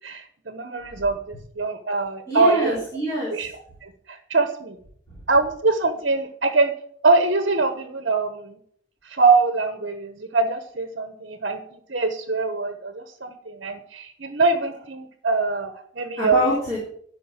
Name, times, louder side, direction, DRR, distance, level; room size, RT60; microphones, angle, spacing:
voice 1, 0.0-2.8 3.3-3.5 3.8-4.8 5.3-6.7 7.0-8.6 9.0-11.6 11.9-16.4, right 3 dB, 55° right, 7 dB, 1.1 m, -23 dB
voice 2, 2.3-3.5 5.1-5.2 16.2-16.8, left 1 dB, 15° left, -8 dB, 4.1 m, -25 dB
12.5 x 5.4 x 7.5 m, 0.62 s
head